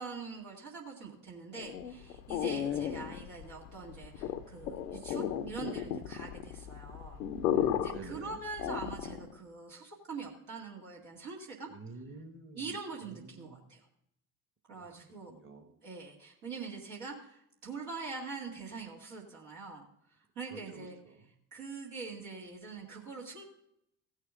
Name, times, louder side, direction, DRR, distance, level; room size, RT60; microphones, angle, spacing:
voice 1, 0.0-7.2 7.5-11.7 12.5-13.8 14.7-15.3 15.8-19.9 20.4-21.0 21.5-23.4, right 4 dB, 70° right, -4 dB, 2.2 m, -43 dB
sound 1, 1.5-9.4, left 10 dB, 85° left, 0.7 m, -35 dB
voice 2, 2.6-2.9 7.8-8.4 11.7-13.7 14.7-15.0 15.3-15.8 20.5-21.3, right 3 dB, 25° right, 7 dB, 1.3 m, -50 dB
16.0 x 6.5 x 3.7 m, 0.75 s
figure-of-eight pair, 55°, 46 cm